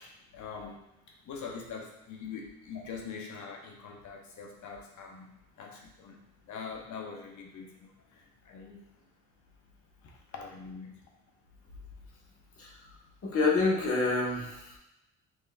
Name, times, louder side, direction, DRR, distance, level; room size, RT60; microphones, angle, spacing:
voice 1, 0.0-8.9 10.0-11.0, left 5 dB, 70° left, 1 dB, 0.9 m, -44 dB
voice 2, 13.2-14.8, left 3 dB, 50° left, -3 dB, 1.3 m, -27 dB
5.6 x 2.9 x 2.3 m, 0.89 s
cardioid pair, 90°, 30 cm